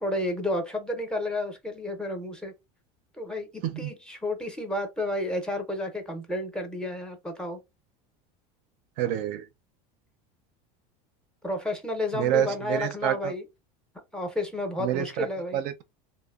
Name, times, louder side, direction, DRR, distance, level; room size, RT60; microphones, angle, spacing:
voice 1, 0.0-2.5 3.2-7.6 11.4-13.4 14.1-15.6, left 1 dB, 5° left, 0.5 m, -31 dB
voice 2, 9.0-9.5 12.1-13.3 14.8-15.8, right 11 dB, 55° right, 0.4 m, -28 dB
2.8 x 2.0 x 2.3 m
supercardioid pair, 145°, 17 cm